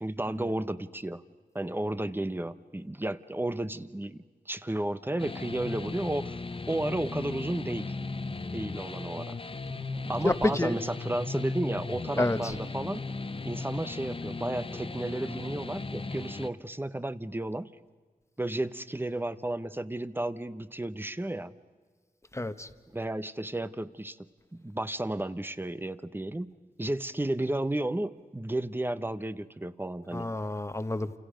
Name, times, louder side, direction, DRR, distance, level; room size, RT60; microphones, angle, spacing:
voice 1, 0.0-1.2 1.5-4.2 4.5-6.4 6.7-7.9 8.5-9.4 10.1-13.0 13.4-17.7 18.4-21.5 22.9-24.2 24.5-26.5 26.8-30.3, right 1 dB, 15° right, 13 dB, 0.9 m, -33 dB
sound 1, 5.2-16.5, left 3 dB, 35° left, 0.9 m, -37 dB
voice 2, 10.2-10.8 12.2-12.5 22.3-22.7 30.1-31.1, left 2 dB, 20° left, 10 dB, 1.2 m, -29 dB
29.5 x 28.5 x 5.1 m, 1.5 s
wide cardioid pair, 95°, 15 cm